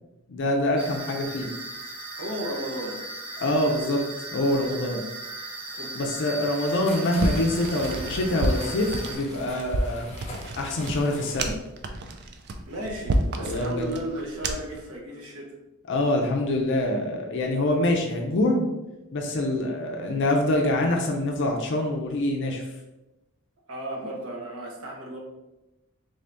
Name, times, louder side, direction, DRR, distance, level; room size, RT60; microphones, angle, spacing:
voice 1, 0.3-1.5 3.4-4.0 4.3-5.1 6.0-10.1 10.6-11.5 13.4-13.9 15.9-18.7 19.1-22.7, left 1 dB, 55° left, 1 dB, 0.4 m, -25 dB
sound 1, 0.8-9.2, right 2 dB, 25° right, 0.9 m, -37 dB
voice 2, 2.2-3.0 5.7-6.1 12.7-15.6 23.7-25.2, right 1 dB, 65° right, -1 dB, 0.9 m, -35 dB
sound 2, 6.4-11.5, left 1 dB, 30° left, 0.8 m, -42 dB
sound 3, 7.2-14.8, right 1 dB, 50° right, 0.4 m, -30 dB
3.5 x 2.6 x 3.3 m, 0.98 s
head